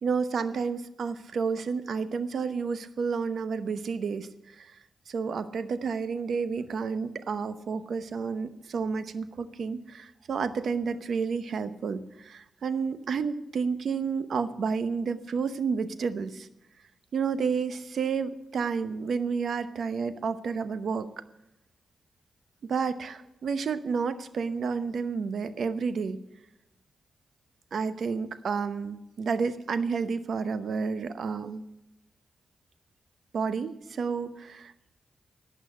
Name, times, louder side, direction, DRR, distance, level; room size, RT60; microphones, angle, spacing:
voice 1, 0.0-4.3 4.6-4.7 5.1-16.5 17.1-21.1 22.6-26.2 27.7-31.6 33.3-34.7, right 5 dB, 70° right, 12 dB, 0.8 m, -30 dB
12.0 x 8.3 x 8.2 m, 0.90 s
supercardioid pair, 45°, 0 cm